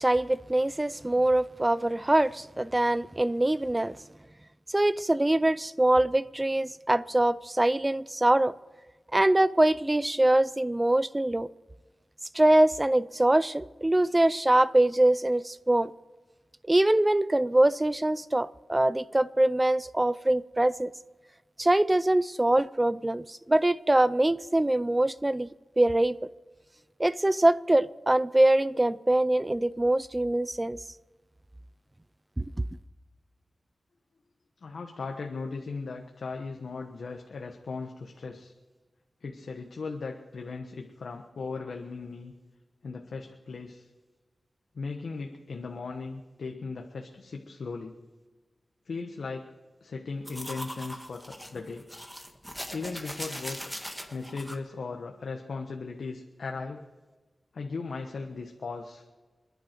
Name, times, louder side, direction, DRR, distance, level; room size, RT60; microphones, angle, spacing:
voice 1, 0.0-4.0 4.7-8.5 9.1-11.5 12.3-15.9 16.7-20.9 21.6-25.5 25.8-26.1 27.0-30.8 32.4-32.5, right 1 dB, 20° right, 0.5 m, -23 dB
voice 2, 34.6-38.5 39.2-42.3 42.8-43.9 44.7-48.0 48.8-49.5 49.8-51.9 52.7-53.7 54.1-56.8 57.5-59.0, left 4 dB, 85° left, 1.3 m, -37 dB
sound 1, 50.2-54.6, equal, ahead, 1.6 m, -40 dB
27.5 x 11.0 x 4.6 m
wide cardioid pair, 95°, 0 cm